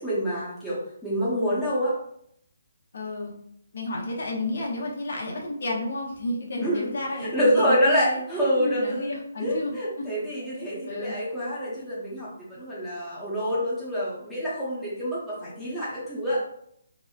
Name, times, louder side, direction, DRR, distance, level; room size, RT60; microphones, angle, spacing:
voice 1, 0.0-2.0 6.6-9.1 9.4-16.4, equal, ahead, -11 dB, 0.7 m, -27 dB
voice 2, 2.9-3.3 3.7-8.2 8.6-10.1 10.9-11.2, left 2 dB, 65° left, -1 dB, 0.7 m, -31 dB
2.9 x 2.0 x 2.3 m, 0.72 s
hypercardioid pair, 165°, 0 cm